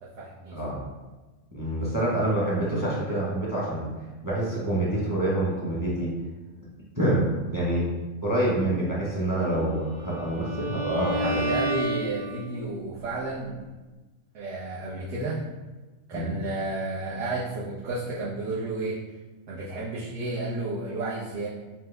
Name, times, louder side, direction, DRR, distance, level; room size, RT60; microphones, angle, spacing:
voice 1, 0.0-0.6 11.1-13.6 14.3-15.4 16.1-19.0 19.5-21.5, right 2 dB, 60° right, -7 dB, 1.0 m, -32 dB
voice 2, 0.5-0.8 1.5-3.9 4.2-6.1 7.0-7.9 8.2-11.5 16.1-16.4, right 1 dB, 20° right, -5 dB, 0.7 m, -26 dB
Bowed string instrument, 9.6-12.7, equal, 45° right, 2.0 m, -31 dB
5.9 x 2.1 x 3.4 m, 1.2 s
omnidirectional pair, 1.5 m